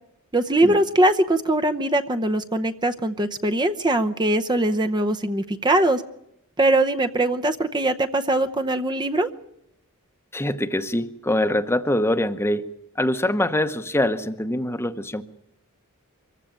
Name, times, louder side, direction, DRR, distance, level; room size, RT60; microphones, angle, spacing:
voice 1, 0.3-6.0 6.6-9.3, right 1 dB, 20° right, 7 dB, 0.8 m, -21 dB
voice 2, 10.3-12.7 13.0-15.2, left 1 dB, 10° left, 11 dB, 0.9 m, -24 dB
24.0 x 15.0 x 9.0 m, 0.82 s
head